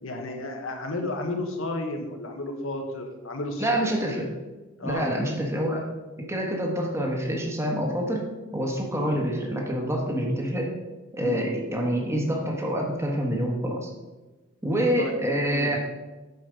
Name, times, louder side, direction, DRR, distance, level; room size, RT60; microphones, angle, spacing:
voice 1, 0.0-4.0 4.8-5.3 8.9-9.1 11.2-11.5 15.0-15.1 15.4-15.7, left 2 dB, 70° left, 4 dB, 1.3 m, -33 dB
voice 2, 3.6-4.3 4.8-5.9 6.2-8.3 8.5-10.7 11.1-13.9 14.6-15.8, equal, 15° right, 0 dB, 1.4 m, -26 dB
8.2 x 5.3 x 5.2 m, 1.2 s
head